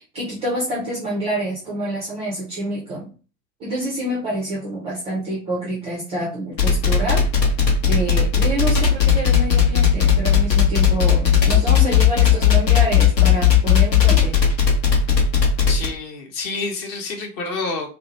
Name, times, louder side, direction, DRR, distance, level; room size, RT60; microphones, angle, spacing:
voice 1, 0.1-3.1 3.6-7.2 7.9-14.4, right 1 dB, 15° right, -3 dB, 0.3 m, -27 dB
Dangerous Stab (loop), 6.6-15.9, left 8 dB, 80° left, 0.9 m, -16 dB
voice 2, 15.7-17.9, left 3 dB, 40° left, 2 dB, 0.9 m, -28 dB
2.6 x 2.1 x 2.8 m, 0.36 s
figure-of-eight pair, 80°, 50 cm